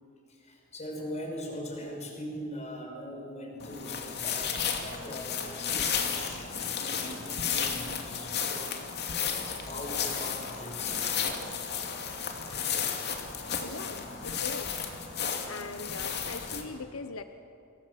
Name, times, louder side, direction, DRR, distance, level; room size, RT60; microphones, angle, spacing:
voice 1, 0.3-11.1, equal, 35° left, 1 dB, 5.5 m, -41 dB
sound 1, 3.6-16.6, left 7 dB, 50° left, 2.8 m, -33 dB
voice 2, 13.6-14.9 15.5-17.2, left 3 dB, 85° left, 9 dB, 1.1 m, -40 dB
28.0 x 21.5 x 7.6 m, 2.6 s
head